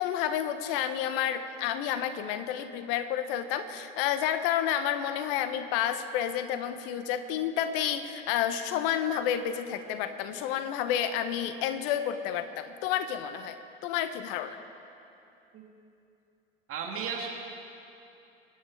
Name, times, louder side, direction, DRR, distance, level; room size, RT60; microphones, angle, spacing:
voice 1, 0.0-13.6 13.8-14.6, left 10 dB, 65° left, 10 dB, 1.3 m, -30 dB
voice 2, 16.7-17.3, right 6 dB, 45° right, 0 dB, 2.6 m, -34 dB
26.0 x 10.5 x 4.9 m, 2.7 s
hypercardioid pair, 75°, 30 cm